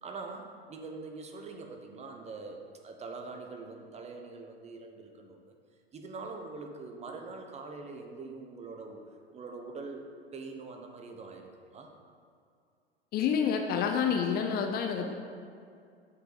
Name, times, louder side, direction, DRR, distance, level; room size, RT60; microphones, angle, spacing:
voice 1, 0.0-5.5 5.9-9.0 9.3-10.1 10.3-11.9, right 3 dB, 20° right, 3 dB, 0.9 m, -43 dB
voice 2, 13.1-15.1, left 7 dB, 30° left, 4 dB, 0.6 m, -28 dB
7.8 x 5.8 x 5.0 m, 2.3 s
figure-of-eight pair, 85°, 31 cm